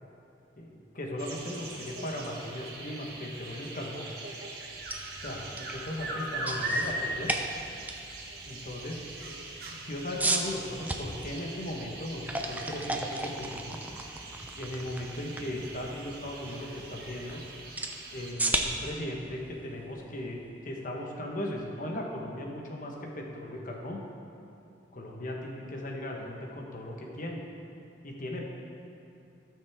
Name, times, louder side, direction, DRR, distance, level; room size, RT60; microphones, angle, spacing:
voice 1, 0.6-4.1 5.2-7.3 8.4-9.0 9.3-9.4 9.7-13.8 14.6-17.4 18.1-24.0 24.9-27.4 28.0-28.4, left 1 dB, 50° left, 0 dB, 1.3 m, -37 dB
sound 1, 1.2-18.3, right 2 dB, 60° right, 1.6 m, -40 dB
sound 2, 4.7-20.6, right 2 dB, 10° right, 0.6 m, -37 dB
17.0 x 6.3 x 3.6 m, 2.8 s
head